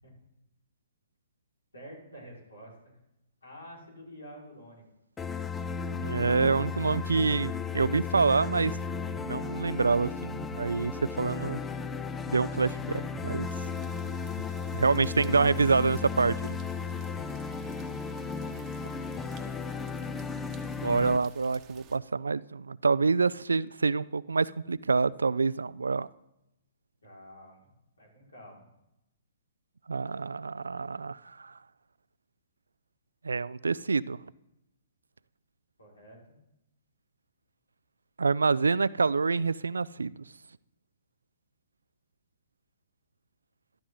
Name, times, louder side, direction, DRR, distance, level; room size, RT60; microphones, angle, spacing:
voice 1, 1.7-3.0 3.4-4.8 19.3-19.6 27.0-27.6 28.0-28.7 35.8-36.4, equal, 85° left, 5.2 m, -49 dB
sound 1, 5.2-21.2, left 5 dB, 15° left, 0.6 m, -35 dB
voice 2, 5.9-8.8 9.2-11.6 12.3-13.5 14.7-16.6 20.8-26.1 29.9-31.5 33.2-34.2 38.2-40.2, right 4 dB, 85° right, 0.4 m, -27 dB
sound 2, 13.4-22.0, right 9 dB, 25° right, 1.1 m, -55 dB
12.5 x 12.5 x 3.9 m
hypercardioid pair, 130°, 0 cm